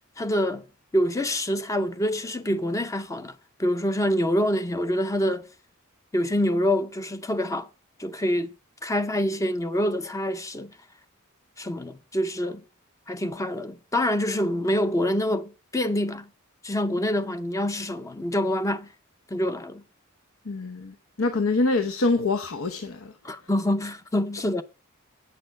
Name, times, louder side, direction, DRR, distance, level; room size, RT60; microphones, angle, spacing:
voice 1, 0.2-0.6 0.9-5.5 6.1-7.7 8.0-8.5 8.8-10.7 11.6-12.6 13.1-16.3 16.6-18.9 19.3-19.8 23.2-24.6, equal, 15° left, 0.6 m, -26 dB
voice 2, 20.5-23.1, left 3 dB, 70° left, 0.8 m, -25 dB
8.5 x 6.8 x 6.4 m
head